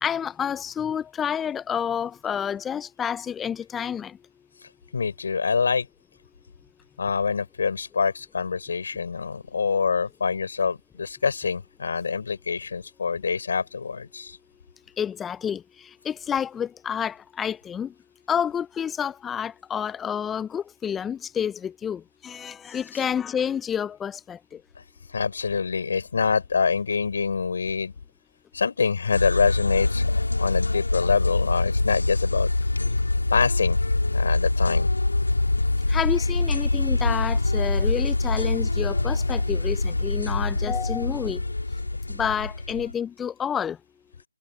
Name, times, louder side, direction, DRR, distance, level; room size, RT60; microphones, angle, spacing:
voice 1, 0.0-4.2 15.0-17.9 18.3-24.6 35.9-41.4 42.1-43.8, left 8 dB, 10° left, 0.7 m, -29 dB
voice 2, 4.6-5.9 7.0-14.4 22.9-23.0 24.7-27.9 28.5-30.1 30.4-32.5 33.3-33.8 34.1-34.9, left 5 dB, 55° left, 4.8 m, -26 dB
sound 1, 29.1-42.9, left 2 dB, 80° left, 2.4 m, -24 dB
figure-of-eight pair, 150°, 0 cm